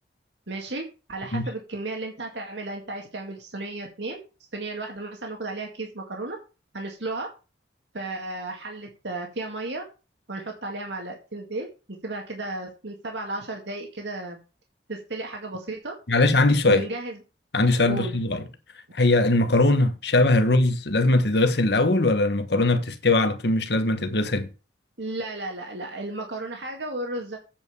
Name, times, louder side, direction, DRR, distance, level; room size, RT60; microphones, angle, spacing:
voice 1, 0.5-4.2 4.5-6.4 6.7-7.3 7.9-9.8 10.3-11.7 12.0-14.4 14.9-15.9 16.6-17.2 17.9-18.2 25.0-27.4, right 2 dB, 90° right, 2.0 m, -34 dB
voice 2, 16.1-16.8 17.5-18.4 18.9-24.5, left 2 dB, 70° left, 1.3 m, -21 dB
8.9 x 5.4 x 7.0 m
head